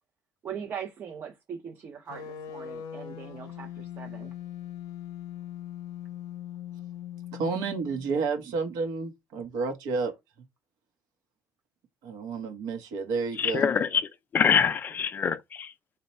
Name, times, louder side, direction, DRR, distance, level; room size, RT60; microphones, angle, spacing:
voice 1, 0.4-4.3, right 7 dB, 35° right, 0.6 m, -40 dB
sound 1, 2.1-8.2, left 10 dB, 80° left, 0.7 m, -40 dB
voice 2, 7.3-10.1 12.0-13.7, right 4 dB, 80° right, 0.9 m, -30 dB
voice 3, 13.4-14.0 14.3-15.7, left 7 dB, 30° left, 0.4 m, -24 dB
4.1 x 2.2 x 4.1 m
cardioid pair, 165°, 7 cm